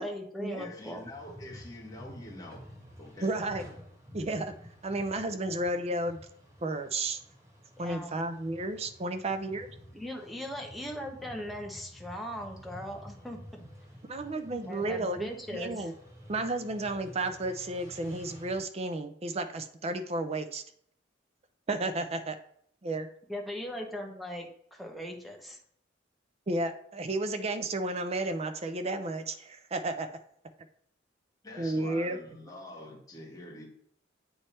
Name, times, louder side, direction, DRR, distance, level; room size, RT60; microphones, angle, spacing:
voice 1, 0.0-1.0 7.8-8.2 9.9-13.6 14.6-15.9 23.3-25.6, equal, ahead, 1 dB, 1.0 m, -39 dB
voice 2, 0.5-2.6 3.0-3.3 31.4-33.7, left 1 dB, 20° left, -3 dB, 1.7 m, -45 dB
sound 1, 0.8-18.6, equal, 15° right, 1.3 m, -51 dB
voice 3, 3.2-3.6 4.1-4.5 4.8-6.2 6.6-7.2 7.8-9.7 14.1-15.9 16.3-20.6 21.7-22.4 22.8-23.1 26.5-30.1 31.6-32.2, right 2 dB, 35° right, 9 dB, 0.5 m, -32 dB
8.7 x 3.3 x 4.2 m, 0.68 s
head